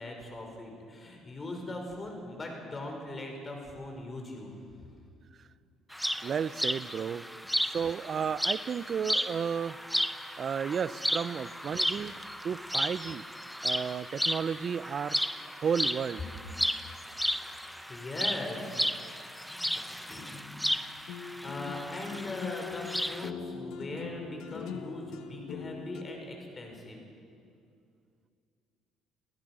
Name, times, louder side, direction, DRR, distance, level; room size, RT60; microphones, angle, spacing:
voice 1, 0.0-4.8 11.8-12.4 17.6-18.8 19.4-19.7 20.1-20.4 21.4-27.0, left 2 dB, 30° left, 2 dB, 5.5 m, -40 dB
sound 1, 5.9-23.3, equal, ahead, 0.7 m, -34 dB
voice 2, 6.2-7.2 7.6-9.8 10.4-12.1 12.4-13.3 13.6-15.2 15.6-16.2, right 7 dB, 45° right, 18 dB, 0.6 m, -32 dB
sound 2, 21.1-26.0, left 6 dB, 75° left, 1.3 m, -41 dB
27.0 x 16.0 x 6.2 m, 2.4 s
supercardioid pair, 85°, 0 cm